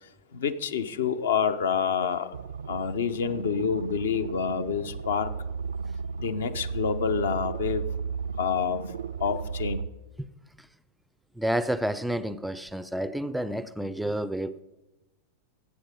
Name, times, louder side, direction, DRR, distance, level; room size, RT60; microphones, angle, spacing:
voice 1, 0.0-2.3 2.7-5.3 6.2-7.8 8.4-8.8 9.2-9.8, left 6 dB, 65° left, 11 dB, 0.8 m, -28 dB
sound 1, 2.3-9.9, right 5 dB, 70° right, 0.4 m, -35 dB
voice 2, 11.4-14.6, right 1 dB, 5° right, 15 dB, 0.4 m, -30 dB
15.5 x 8.4 x 5.1 m, 1.1 s
figure-of-eight pair, 90°, 0 cm